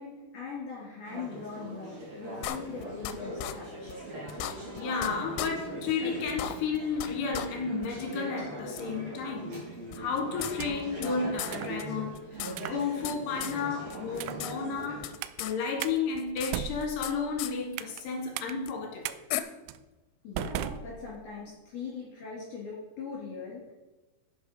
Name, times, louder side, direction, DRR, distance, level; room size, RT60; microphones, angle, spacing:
voice 1, 0.0-4.0 20.2-23.7, left 5 dB, 45° left, -6 dB, 4.2 m, -41 dB
Conversation / Chatter, 1.0-15.0, right 1 dB, 40° right, 4.4 m, -41 dB
sound 1, 2.4-3.1 3.4-3.5 3.9-4.0 4.3-5.1 5.4-5.5 5.9-6.0 6.3-7.1 7.3-7.5 7.8-7.9 8.8-8.9 9.9-11.1 11.4-11.5 11.8-11.9 12.1-13.2 13.4-13.6 13.9-14.5 14.8-15.5 15.8-17.1 17.4-17.5 18.7-18.8 19.3-19.4, left 13 dB, 80° left, 3.0 m, -35 dB
voice 2, 4.7-9.6 9.9-15.1 15.4-19.2, left 5 dB, 65° left, 2 dB, 3.3 m, -32 dB
sound 2, 10.4-11.0 11.5-11.8 12.5-12.8 13.4-13.7 14.1-14.5 15.2-15.4 15.8-16.0 16.4-18.0 18.4-18.5 19.0-19.2 19.7-19.8 20.4-21.4, right 11 dB, 85° right, 2.5 m, -37 dB
11.5 x 8.2 x 5.5 m, 1.1 s
omnidirectional pair, 5.4 m